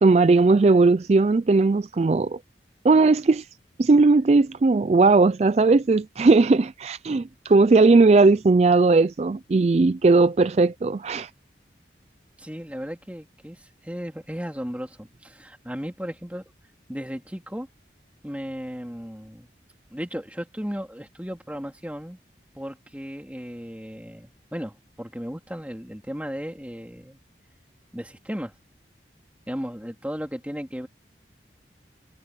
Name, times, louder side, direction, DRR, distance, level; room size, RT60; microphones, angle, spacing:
voice 1, 0.0-2.4 2.8-3.5 3.8-11.3, right 3 dB, 35° right, 0.3 m, -18 dB
voice 2, 12.4-16.4 16.9-17.7 18.2-19.5 19.9-22.2 22.5-27.2 27.9-28.5 29.5-30.9, equal, 10° right, 3.1 m, -35 dB
head